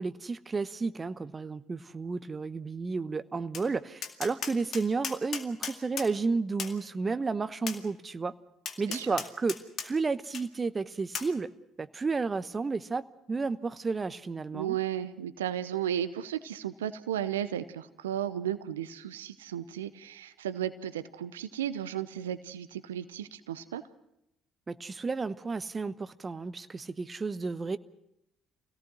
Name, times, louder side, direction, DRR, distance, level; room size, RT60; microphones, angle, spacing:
voice 1, 0.0-8.3 8.8-9.6 9.8-11.5 11.8-14.8 24.7-27.8, right 4 dB, 30° right, 14 dB, 1.0 m, -32 dB
Tap, 3.5-3.7 4.0-6.1 6.6-6.8 7.7-7.8 8.7-9.9 10.3-10.4 11.1-11.3, left 7 dB, 55° left, 2.1 m, -36 dB
voice 2, 14.5-23.8, right 10 dB, 85° right, 13 dB, 0.7 m, -34 dB
25.5 x 17.5 x 6.2 m, 0.80 s
hypercardioid pair, 50°, 0 cm